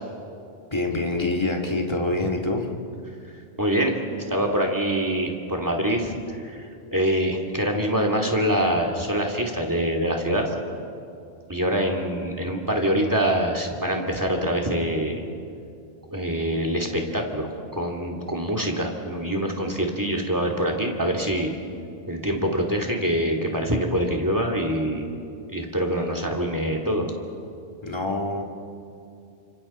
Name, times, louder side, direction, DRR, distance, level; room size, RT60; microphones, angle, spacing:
voice 1, 0.7-2.7 27.8-28.4, left 2 dB, 25° left, 0 dB, 2.1 m, -25 dB
voice 2, 3.6-3.9 4.3-6.1 6.4-6.7 6.9-10.5 11.5-15.2 16.1-21.5 22.1-25.0 25.5-27.1, equal, 15° right, 2 dB, 2.5 m, -25 dB
29.5 x 25.5 x 4.4 m, 2.5 s
omnidirectional pair, 1.1 m